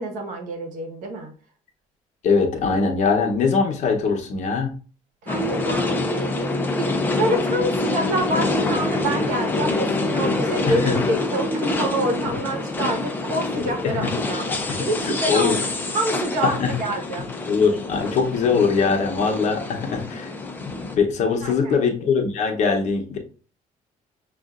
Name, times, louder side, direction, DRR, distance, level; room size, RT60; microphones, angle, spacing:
voice 1, 0.0-1.3 5.2-17.3 21.4-21.8, right 1 dB, 70° right, 2 dB, 1.2 m, -27 dB
voice 2, 2.2-4.7 10.7-11.0 13.6-14.1 14.7-15.6 16.4-16.7 17.5-20.3 20.6-23.2, left 5 dB, 55° left, 3 dB, 0.8 m, -22 dB
sound 1, 5.3-21.0, left 2 dB, 15° left, 0.5 m, -26 dB
6.4 x 2.5 x 2.4 m, 0.39 s
cardioid pair, 170°, 14 cm